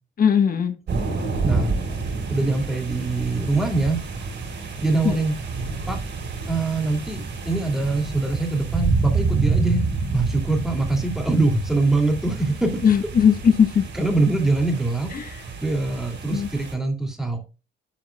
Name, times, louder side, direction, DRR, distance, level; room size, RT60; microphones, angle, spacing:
voice 1, 0.2-0.7 5.0-5.2 12.8-13.8 15.1-15.3 16.3-16.5, left 7 dB, 45° left, 1.2 m, -18 dB
sound 1, 0.9-16.7, right 4 dB, 60° right, 4.1 m, -28 dB
voice 2, 2.3-4.0 4.8-5.3 5.9-6.0 6.5-9.9 10.1-12.8 13.9-15.1 15.6-17.4, right 2 dB, ahead, 2.6 m, -23 dB
11.5 x 4.7 x 2.3 m
cardioid pair, 90°, 20 cm